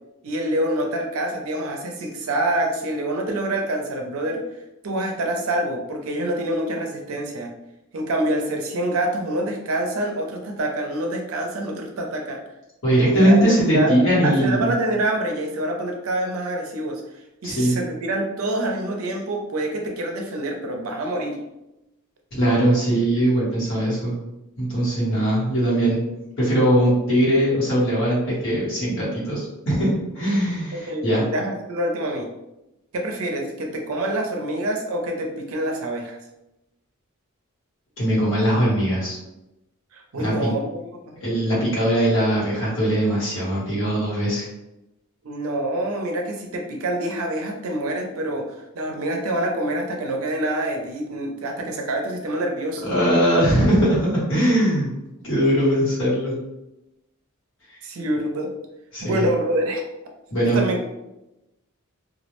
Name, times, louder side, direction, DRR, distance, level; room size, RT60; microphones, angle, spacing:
voice 1, 0.2-4.4 4.8-7.5 7.9-12.4 13.1-17.0 17.4-21.4 30.7-32.3 32.9-36.2 39.9-41.1 45.2-52.9 57.8-58.5 59.0-59.8 60.5-60.9, right 1 dB, 80° right, 2 dB, 0.5 m, -26 dB
voice 2, 12.8-14.7 17.4-17.8 22.3-24.2 24.6-26.0 26.4-31.2 38.0-39.2 40.2-40.5 41.2-44.5 52.8-54.9 55.2-56.4 58.9-59.2 60.3-60.6, right 1 dB, 60° left, -6 dB, 1.1 m, -20 dB
2.3 x 2.0 x 2.9 m, 0.93 s
head